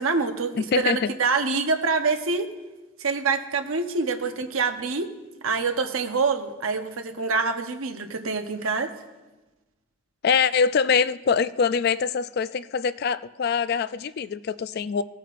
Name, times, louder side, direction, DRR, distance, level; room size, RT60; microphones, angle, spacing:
voice 1, 0.0-2.5 3.0-5.1 5.4-8.9, right 4 dB, 85° right, 6 dB, 0.9 m, -26 dB
voice 2, 0.6-1.1 10.2-15.0, left 6 dB, 50° left, 15 dB, 0.3 m, -24 dB
18.0 x 8.6 x 2.5 m, 1.1 s
head